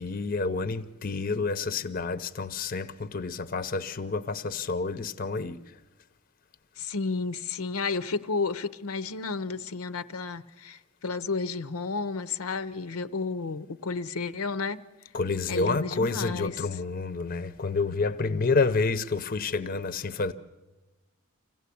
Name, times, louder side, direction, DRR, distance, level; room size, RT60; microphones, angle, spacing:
voice 1, 0.0-5.6 15.1-20.3, left 4 dB, 40° left, 0.7 m, -29 dB
voice 2, 6.8-14.8 15.5-16.7, left 4 dB, 80° left, 0.6 m, -32 dB
25.0 x 16.5 x 8.4 m
head